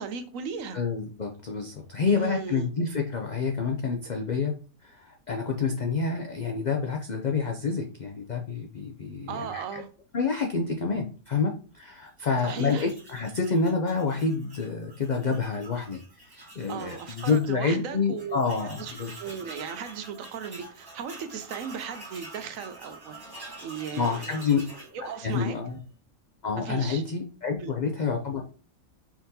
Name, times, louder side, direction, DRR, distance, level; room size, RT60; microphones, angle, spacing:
voice 1, 0.0-0.8 2.1-2.7 9.3-9.9 12.4-12.9 16.7-18.4 18.8-18.9 19.2-23.1 23.6-24.4 25.1-25.6 26.6-27.0 27.6-27.7, right 7 dB, 70° right, 1.0 m, -36 dB
voice 2, 0.7-4.5 4.8-9.8 10.1-19.1 24.0-24.6 25.2-25.8 26.4-28.4, left 5 dB, 80° left, 0.4 m, -28 dB
Tools, 12.4-17.5 17.8-17.9 18.2-25.8, right 2 dB, 15° right, 1.2 m, -46 dB
4.8 x 3.8 x 2.7 m
omnidirectional pair, 1.5 m